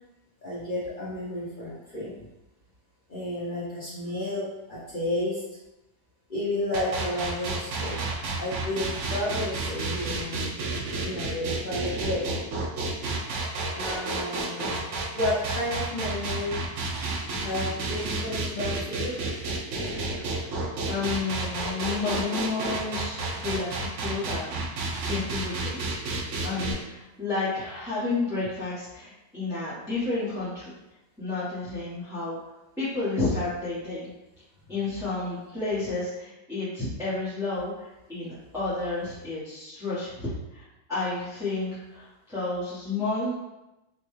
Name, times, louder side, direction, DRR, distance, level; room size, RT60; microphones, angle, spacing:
voice 1, 0.4-2.1 3.1-5.4 6.3-8.0 8.4-10.5 11.0-12.3 13.7-14.8 15.1-16.6 17.4-19.2, left 1 dB, 50° left, -8 dB, 0.6 m, -31 dB
sound 1, 6.7-26.7, right 3 dB, 70° right, 0.7 m, -31 dB
voice 2, 20.9-26.0 26.4-30.7 31.2-32.4 32.8-34.1 34.7-43.3, left 3 dB, 5° right, -13 dB, 0.7 m, -31 dB
3.8 x 2.2 x 3.1 m, 0.97 s
omnidirectional pair, 1.8 m